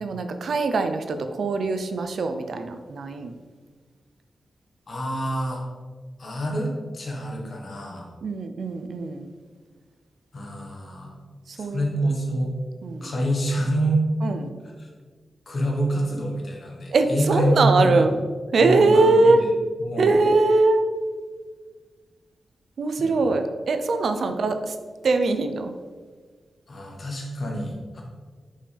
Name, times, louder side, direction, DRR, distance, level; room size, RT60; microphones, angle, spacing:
voice 1, 0.0-3.3 8.2-9.3 11.5-11.9 12.8-13.1 14.2-14.5 16.9-18.2 18.5-19.4 20.0-20.8 22.8-24.8 25.0-25.7, right 3 dB, 70° right, 8 dB, 0.5 m, -22 dB
voice 2, 4.9-5.6 6.2-8.1 10.3-11.1 11.5-12.5 13.0-14.0 14.8-14.9 15.5-18.0 18.6-19.5 19.8-20.1 23.0-23.3 26.7-28.0, right 1 dB, 55° left, -1 dB, 1.4 m, -26 dB
5.4 x 5.2 x 3.4 m, 1.5 s
cardioid pair, 80°, 0 cm